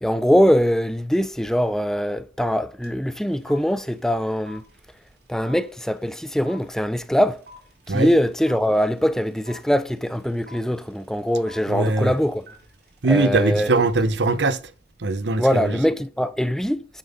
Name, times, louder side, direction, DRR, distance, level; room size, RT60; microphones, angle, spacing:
voice 1, 0.0-4.6 5.3-7.4 7.9-12.4 13.1-13.9 15.4-17.0, equal, 5° left, 0.5 m, -22 dB
sound 1, 2.8-2.9 3.1-14.3, left 1 dB, 60° right, 3.2 m, -49 dB
voice 2, 11.7-12.1 13.0-14.6 15.0-15.8, right 3 dB, 85° right, 0.8 m, -21 dB
9.2 x 7.3 x 4.1 m
head